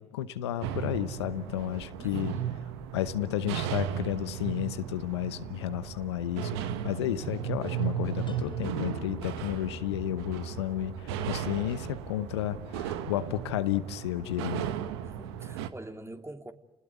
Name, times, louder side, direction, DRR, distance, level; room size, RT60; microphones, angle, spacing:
voice 1, 0.0-2.3 2.9-14.7, left 12 dB, 85° left, 0.9 m, -32 dB
sound 1, 0.6-15.7, right 9 dB, 80° right, 1.3 m, -36 dB
voice 2, 2.0-2.5 15.0-16.5, right 2 dB, 20° right, 2.8 m, -44 dB
sound 2, 8.3-14.1, left 2 dB, 35° left, 1.7 m, -47 dB
30.0 x 20.0 x 9.6 m
hypercardioid pair, 50°, 14 cm